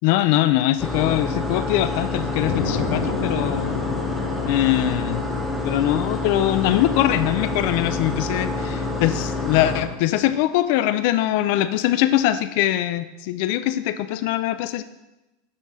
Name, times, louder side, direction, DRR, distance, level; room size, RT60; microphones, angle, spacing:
voice 1, 0.0-3.8 4.5-5.2 5.6-14.8, left 13 dB, 60° left, 12 dB, 0.4 m, -22 dB
sound 1, 0.8-9.8, left 3 dB, 5° left, 1.2 m, -27 dB
sound 2, 2.4-10.3, left 4 dB, 80° left, 1.6 m, -34 dB
6.7 x 6.0 x 4.0 m, 0.98 s
hypercardioid pair, 95°, 0 cm